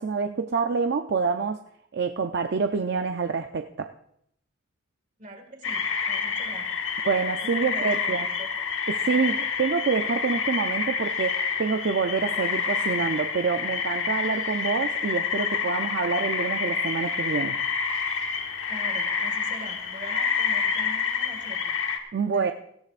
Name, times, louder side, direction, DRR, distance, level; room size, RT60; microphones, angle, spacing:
voice 1, 0.0-1.6 1.9-3.9 7.0-8.3 8.9-17.6 22.1-22.5, right 5 dB, 60° right, 7 dB, 0.5 m, -27 dB
voice 2, 5.2-6.7 7.1-8.0 8.4-8.5 18.7-21.7 22.3-22.5, right 1 dB, 40° right, 5 dB, 2.0 m, -42 dB
sound 1, 5.6-22.0, left 6 dB, 80° left, 1.4 m, -28 dB
17.0 x 15.5 x 2.5 m, 0.73 s
head